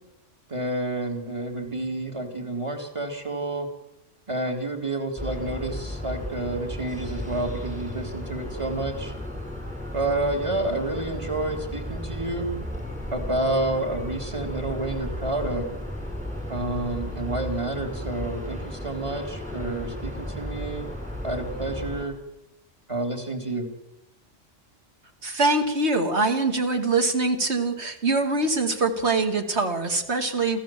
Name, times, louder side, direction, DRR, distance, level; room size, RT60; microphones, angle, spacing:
voice 1, 0.5-3.7 4.3-9.1 9.9-12.5 13.1-15.7 16.5-20.9 21.2-22.2 22.9-23.7, right 2 dB, 25° right, 3 dB, 3.3 m, -29 dB
sound 1, 5.2-22.0, left 1 dB, 5° right, 5.7 m, -34 dB
voice 2, 25.2-30.6, right 3 dB, 65° right, 6 dB, 2.8 m, -23 dB
27.5 x 15.5 x 7.7 m, 0.89 s
omnidirectional pair, 1.3 m